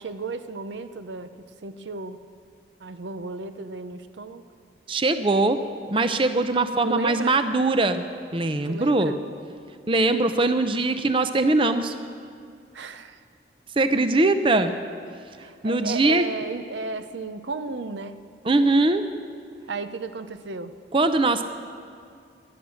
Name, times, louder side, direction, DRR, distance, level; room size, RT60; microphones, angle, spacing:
voice 1, 0.0-1.3 1.6-2.2 2.8-4.5 6.8-7.4 8.6-9.2 12.7-13.2 14.5-14.7 15.2-18.2 19.7-20.8, right 3 dB, 80° right, 11 dB, 0.7 m, -34 dB
voice 2, 4.9-5.6 5.9-8.1 8.3-9.1 9.9-11.9 13.8-14.7 15.6-16.3 18.4-19.0 20.9-21.4, right 2 dB, 30° right, 9 dB, 0.6 m, -21 dB
20.0 x 11.0 x 6.4 m, 2.3 s
head